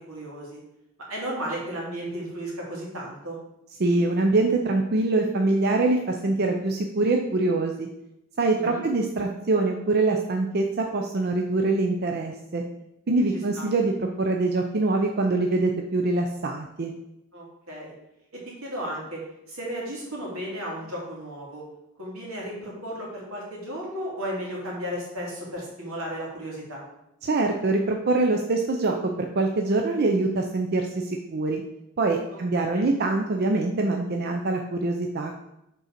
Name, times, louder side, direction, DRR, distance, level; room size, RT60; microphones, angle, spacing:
voice 1, 0.1-0.6 1.1-3.4 8.6-8.8 13.3-13.6 17.3-17.9 18.3-19.2 19.5-21.6 22.0-26.8 32.5-32.9, equal, 85° right, -3 dB, 2.5 m, -34 dB
voice 2, 3.8-7.9 8.4-12.6 13.1-16.9 27.2-31.6 32.0-35.3, right 2 dB, 50° right, 3 dB, 0.5 m, -24 dB
5.4 x 3.9 x 5.8 m, 0.84 s
head